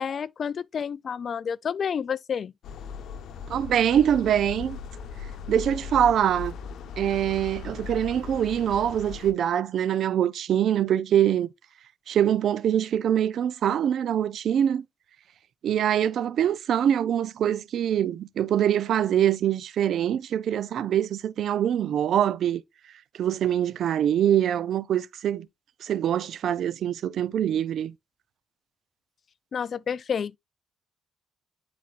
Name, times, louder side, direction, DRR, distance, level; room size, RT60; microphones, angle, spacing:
voice 1, 0.0-2.5 29.5-30.4, left 7 dB, 50° left, 0.3 m, -30 dB
sound 1, 2.6-9.3, left 6 dB, 70° left, 1.0 m, -38 dB
voice 2, 3.5-4.8 5.5-6.6 7.0-11.5 12.1-14.8 15.6-22.6 23.2-25.5 25.8-27.9, right 10 dB, 70° right, 0.5 m, -24 dB
10.5 x 4.3 x 2.4 m
cardioid pair, 90°, 0 cm